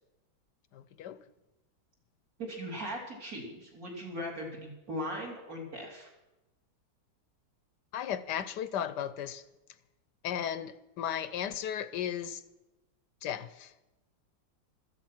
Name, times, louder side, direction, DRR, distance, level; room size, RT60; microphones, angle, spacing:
voice 1, 0.7-1.2 7.9-9.4 10.2-12.4 13.2-13.7, left 9 dB, 70° left, 1.3 m, -35 dB
voice 2, 2.4-6.1, equal, 50° right, 4.4 m, -39 dB
15.0 x 14.0 x 6.0 m
omnidirectional pair, 2.0 m